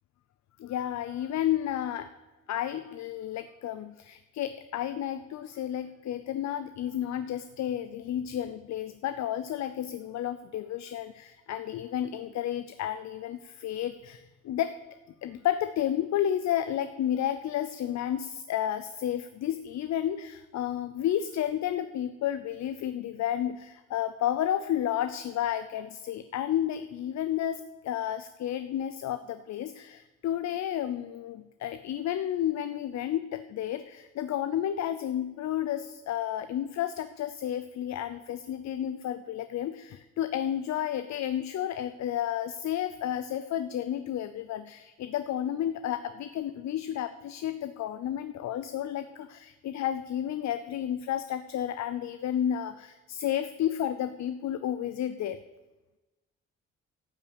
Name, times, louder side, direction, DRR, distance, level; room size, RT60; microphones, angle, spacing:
voice 1, 0.6-2.1 2.5-14.8 15.2-55.4, left 11 dB, 65° left, 12 dB, 0.6 m, -31 dB
12.0 x 5.7 x 8.2 m, 1.1 s
cardioid pair, 90°, 30 cm